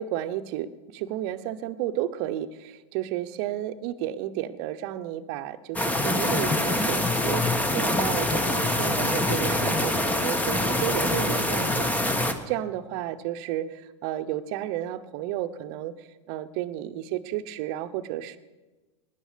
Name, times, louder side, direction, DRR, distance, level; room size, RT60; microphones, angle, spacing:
voice 1, 0.0-11.9 12.5-15.9 16.3-18.4, right 12 dB, 50° right, 12 dB, 1.0 m, -32 dB
sound 1, 5.8-12.3, left 1 dB, 10° left, 1.4 m, -25 dB
19.0 x 10.5 x 5.2 m, 1.2 s
hypercardioid pair, 105°, 16 cm